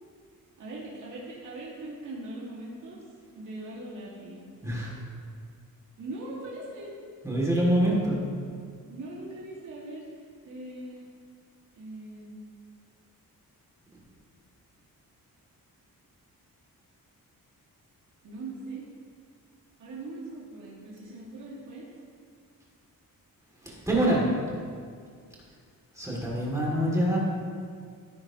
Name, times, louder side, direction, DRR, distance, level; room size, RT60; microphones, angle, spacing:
voice 1, 0.6-3.0 3.3-4.4 6.0-6.9 8.9-11.1 11.8-12.4 18.2-18.9 19.8-21.9, right 2 dB, 60° right, -7 dB, 2.2 m, -40 dB
voice 2, 4.6-4.9 7.2-8.2 23.6-24.2 25.9-27.2, right 1 dB, 10° right, -5 dB, 2.6 m, -25 dB
15.0 x 9.6 x 3.0 m, 2.1 s
wide cardioid pair, 155°, 35 cm